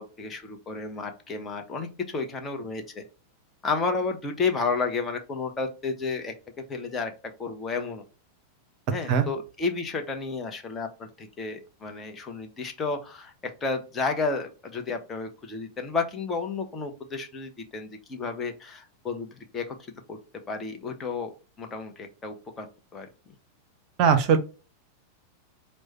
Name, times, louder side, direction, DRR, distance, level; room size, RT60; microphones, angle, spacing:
voice 1, 0.0-3.0 3.6-6.3 6.7-7.1 7.4-8.0 8.9-19.8 20.1-20.2 20.5-21.3 21.6-22.7 22.9-23.1, left 4 dB, 20° left, 4 dB, 0.7 m, -31 dB
voice 2, 24.0-24.4, right 7 dB, 40° right, 8 dB, 0.6 m, -19 dB
4.7 x 2.1 x 4.1 m, 0.34 s
figure-of-eight pair, 90°, 0 cm